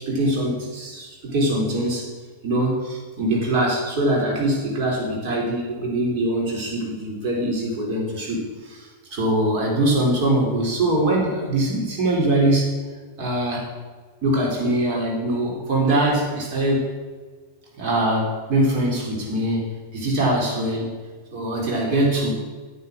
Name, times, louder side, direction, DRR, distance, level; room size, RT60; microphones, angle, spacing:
voice 1, 0.0-2.1 2.4-12.7 13.2-13.7 14.2-16.9 17.8-21.0 21.3-22.3, right 1 dB, 40° right, -2 dB, 4.1 m, -23 dB
9.8 x 8.2 x 6.4 m, 1.4 s
figure-of-eight pair, 90°, 0 cm